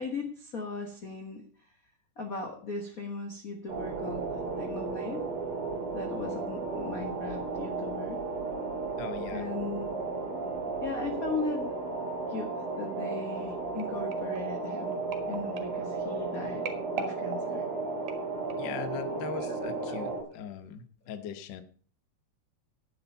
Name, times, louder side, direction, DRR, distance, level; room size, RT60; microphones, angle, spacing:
voice 1, 0.0-1.4 2.2-4.2 4.6-5.2 5.9-8.2 9.3-9.9 10.8-11.7 12.3-12.5 12.8-15.0 15.3-16.7 17.0-17.6 19.3-20.0, left 3 dB, 45° left, 3 dB, 1.2 m, -38 dB
sound 1, 3.7-20.2, right 3 dB, 45° right, 3.4 m, -34 dB
voice 2, 9.0-9.5 18.6-21.6, left 8 dB, 80° left, 10 dB, 1.0 m, -40 dB
sound 2, 13.8-18.8 19.4-19.6 19.9-20.0, right 6 dB, 75° right, 3.1 m, -43 dB
11.0 x 8.7 x 5.5 m, 0.42 s
omnidirectional pair, 3.6 m